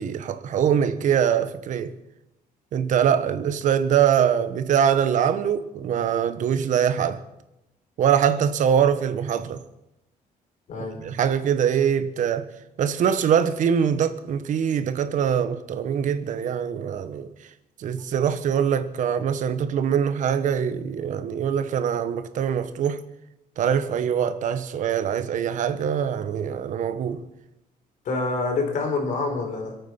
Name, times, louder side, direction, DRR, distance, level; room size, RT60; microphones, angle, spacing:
voice 1, 0.0-1.9 2.7-7.2 8.0-9.6 11.0-12.5 12.8-17.3 17.8-23.0 23.6-27.2, right 8 dB, 55° right, 1.2 m, -23 dB
voice 2, 10.7-11.0 28.0-29.8, left 3 dB, 55° left, 4.3 m, -26 dB
26.5 x 9.2 x 5.9 m
cardioid pair, 160°, 15 cm